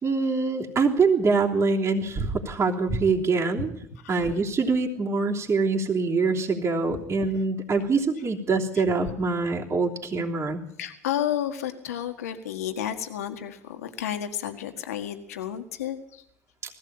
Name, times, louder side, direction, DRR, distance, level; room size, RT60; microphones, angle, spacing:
voice 1, 0.0-3.7 4.1-10.6, right 4 dB, 35° right, -1 dB, 3.2 m, -24 dB
voice 2, 10.8-16.2, left 10 dB, 90° left, 6 dB, 1.8 m, -32 dB
20.0 x 15.5 x 8.9 m, 0.74 s
hypercardioid pair, 70°, 8 cm